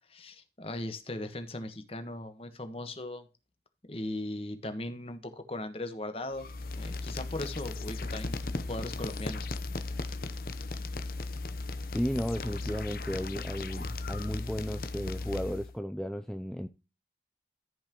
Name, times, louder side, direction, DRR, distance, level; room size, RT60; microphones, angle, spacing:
voice 1, 0.1-3.3 3.9-6.5 6.7-8.3 8.7-9.5, left 1 dB, 35° left, 1.3 m, -38 dB
sound 1, 6.3-15.7, left 3 dB, 55° left, 0.8 m, -36 dB
voice 2, 11.9-16.7, equal, 5° left, 0.5 m, -34 dB
14.0 x 5.7 x 3.0 m
head